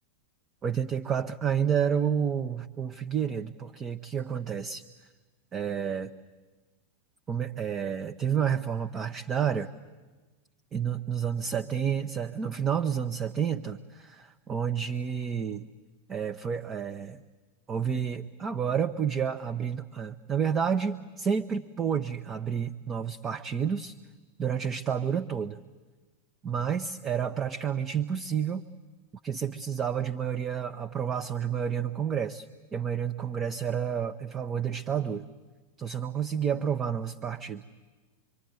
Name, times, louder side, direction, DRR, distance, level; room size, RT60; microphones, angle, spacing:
voice 1, 0.6-4.9 5.5-6.1 7.3-9.7 10.7-15.7 16.1-17.2 17.7-24.0 24.4-25.6 26.4-28.7 29.2-35.3 35.8-37.6, right 7 dB, 25° right, 8 dB, 0.9 m, -30 dB
26.0 x 24.5 x 9.4 m, 1.3 s
figure-of-eight pair, 90°, 0 cm